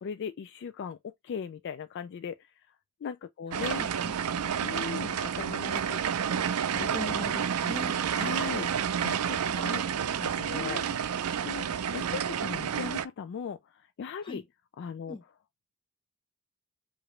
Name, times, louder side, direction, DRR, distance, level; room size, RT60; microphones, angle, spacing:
voice 1, 0.0-2.7 3.0-3.9 4.6-5.9 6.8-7.0 8.1-8.7 9.0-9.8 10.2-10.8 11.4-11.7 11.9-14.4 14.8-15.2, left 7 dB, 55° left, 0.3 m, -38 dB
voice 2, 3.4-4.8 5.1-5.2 5.6-6.0 6.3-8.0 9.4-10.2 10.5-11.0 14.2-14.4 15.1-15.2, left 2 dB, 20° left, 0.9 m, -42 dB
sound 1, 3.5-13.1, right 8 dB, 80° right, 0.5 m, -30 dB
4.9 x 2.6 x 3.1 m
head